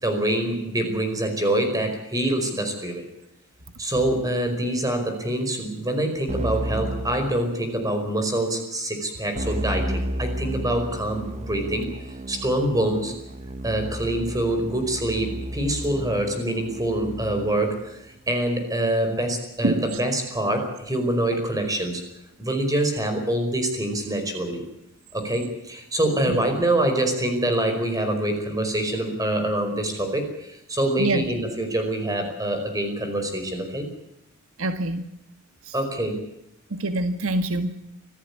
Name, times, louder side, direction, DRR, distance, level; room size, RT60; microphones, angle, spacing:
voice 1, 0.0-3.0 3.8-12.0 12.3-13.1 13.6-18.0 18.3-22.0 22.4-24.6 25.1-33.9 35.7-36.2, right 1 dB, 15° right, 6 dB, 5.0 m, -25 dB
Keyboard (musical), 6.3-8.0 9.4-17.7, right 1 dB, 35° right, 1.4 m, -32 dB
voice 2, 34.6-35.0 35.7-35.8 36.7-37.7, right 2 dB, 70° right, 8 dB, 1.6 m, -24 dB
26.0 x 14.5 x 8.4 m, 0.81 s
head